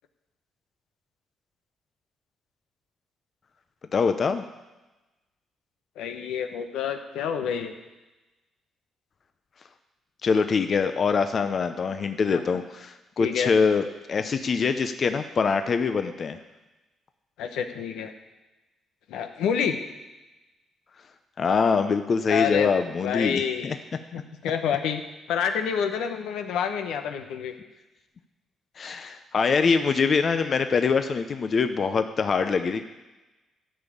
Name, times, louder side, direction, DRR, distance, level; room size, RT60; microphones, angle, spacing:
voice 1, 3.9-4.4 10.2-16.4 21.4-23.8 28.8-32.8, left 5 dB, 45° left, 9 dB, 0.7 m, -24 dB
voice 2, 6.0-7.7 12.3-12.6 13.2-13.5 17.4-18.1 19.1-19.8 22.3-22.7 23.0-23.7 24.1-25.0 25.3-27.5, left 7 dB, 90° left, 6 dB, 1.0 m, -28 dB
12.5 x 5.4 x 8.4 m, 1.1 s
cardioid pair, 90°, 0 cm